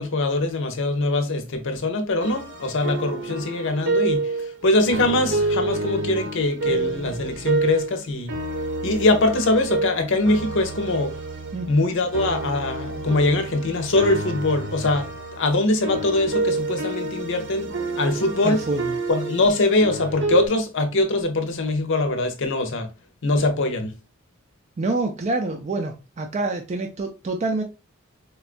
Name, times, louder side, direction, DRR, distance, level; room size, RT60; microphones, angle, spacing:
voice 1, 0.0-4.2 4.6-8.3 8.8-11.1 11.7-18.6 19.1-22.9 23.2-23.9, left 2 dB, 60° left, 0.7 m, -22 dB
sound 1, 2.2-8.0 8.3-20.5, right 3 dB, 60° right, 0.7 m, -28 dB
voice 2, 18.4-19.0 24.8-27.6, right 2 dB, 35° right, 0.4 m, -26 dB
4.3 x 2.3 x 2.4 m
head